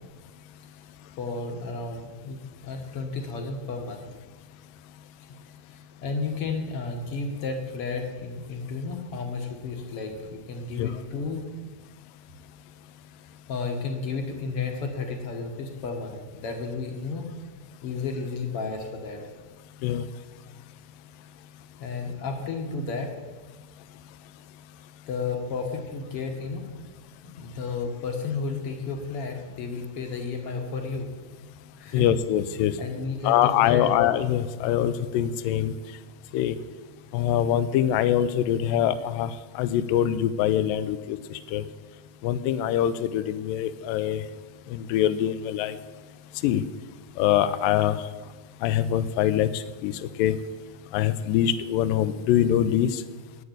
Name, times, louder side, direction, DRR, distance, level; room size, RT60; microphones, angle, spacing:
voice 1, 1.2-4.1 5.7-11.4 13.5-17.3 17.8-19.2 21.8-23.1 25.1-26.7 27.2-31.1 31.8-32.0 32.8-33.9, left 4 dB, 55° left, 3 dB, 1.7 m, -32 dB
voice 2, 31.9-32.7 33.2-35.8 36.3-36.6 37.1-41.7 42.2-44.2 44.7-45.8 46.4-46.6 47.2-48.0 48.6-50.3 50.9-53.0, left 11 dB, 80° left, 13 dB, 2.2 m, -24 dB
9.4 x 8.7 x 8.0 m, 1.3 s
omnidirectional pair, 4.1 m